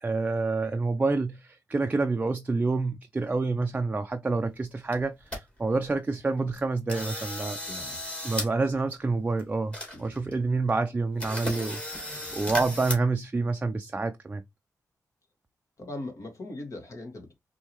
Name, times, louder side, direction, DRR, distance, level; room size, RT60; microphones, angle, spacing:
voice 1, 0.0-7.6 8.2-14.4, right 3 dB, 25° right, 0.4 m, -28 dB
sound 1, 4.6-4.7 4.9-5.4 5.8-5.9 6.4-6.6 6.9-8.5 8.8-8.9 9.4-9.5 9.7-10.3 10.7-10.8 11.2-13.0, left 1 dB, 20° left, 2.1 m, -35 dB
voice 2, 7.7-8.0 9.9-10.3 15.8-17.3, left 2 dB, 55° left, 1.7 m, -40 dB
4.6 x 2.8 x 3.0 m
cardioid pair, 100°, 6 cm